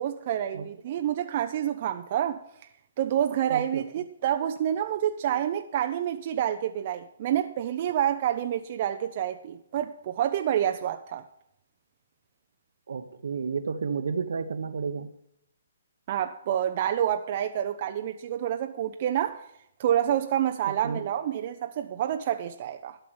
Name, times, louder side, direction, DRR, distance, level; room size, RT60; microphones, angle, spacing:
voice 1, 0.0-2.4 3.0-11.2 16.1-19.4 19.8-23.0, right 10 dB, 45° right, 0.7 m, -28 dB
voice 2, 3.5-3.8 12.9-15.1 20.8-21.0, right 5 dB, 70° right, 1.1 m, -31 dB
12.5 x 5.9 x 8.8 m
hypercardioid pair, 145°, 0 cm